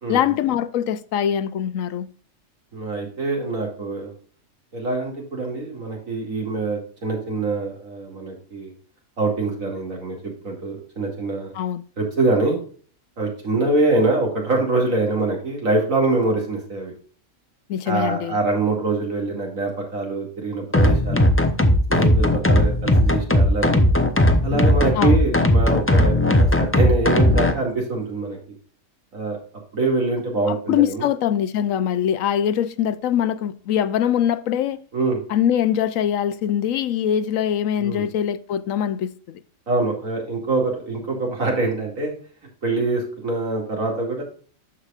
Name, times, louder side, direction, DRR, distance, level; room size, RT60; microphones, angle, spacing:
voice 1, 0.1-2.1 11.5-11.8 17.7-18.4 25.0-25.2 30.5-34.8 35.3-39.4, left 9 dB, 75° left, 1.0 m, -23 dB
voice 2, 2.7-4.1 4.7-8.7 9.2-11.5 12.0-12.6 13.2-16.9 17.9-21.3 21.9-23.9 24.4-28.4 29.1-29.4 29.7-31.1 34.9-35.2 37.8-38.1 39.7-42.1 42.6-44.2, right 3 dB, 80° right, 2.7 m, -24 dB
sound 1, 20.7-27.5, left 1 dB, 15° left, 0.4 m, -17 dB
13.0 x 4.9 x 2.4 m
omnidirectional pair, 1.4 m